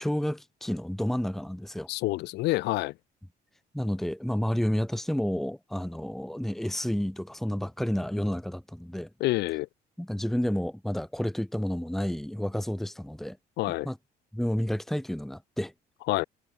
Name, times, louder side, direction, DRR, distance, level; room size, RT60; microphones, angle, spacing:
voice 1, 0.0-1.9 3.7-9.1 10.0-13.4 13.7-14.0 14.3-15.7, equal, ahead, 1.6 m, -30 dB
voice 2, 1.9-2.9 9.2-9.7 13.6-13.9 16.1-16.2, left 19 dB, 80° left, 0.9 m, -27 dB
cardioid pair, 110°, 17 cm